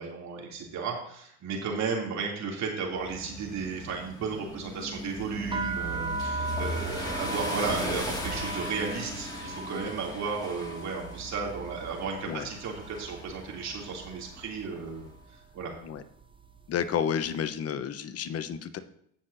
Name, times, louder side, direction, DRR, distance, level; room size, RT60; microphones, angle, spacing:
voice 1, 0.0-15.7, right 5 dB, 45° right, -1 dB, 3.0 m, -34 dB
sound 1, 2.9-15.1, equal, 10° left, 2.1 m, -38 dB
sound 2, 5.5-13.4 13.7-14.3 14.9-15.2 15.5-17.0, right 3 dB, 15° right, 0.5 m, -38 dB
voice 2, 16.7-18.8, left 8 dB, 35° left, 11 dB, 0.9 m, -31 dB
17.5 x 5.9 x 2.7 m, 0.68 s
hypercardioid pair, 90°, 39 cm